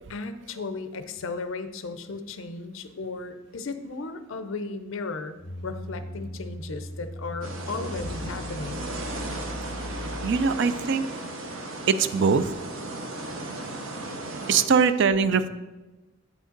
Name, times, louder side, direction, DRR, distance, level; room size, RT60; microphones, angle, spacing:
voice 1, 0.1-5.4 5.6-8.8, left 3 dB, 70° left, 10 dB, 0.5 m, -35 dB
sound 1, 5.4-10.8, left 1 dB, 35° left, 0.7 m, -38 dB
sound 2, 7.4-14.7, right 2 dB, 75° right, 0.9 m, -36 dB
voice 2, 10.2-11.1 11.9-12.5 14.5-15.5, right 5 dB, 60° right, 12 dB, 0.4 m, -22 dB
8.2 x 5.1 x 3.9 m, 1.1 s
head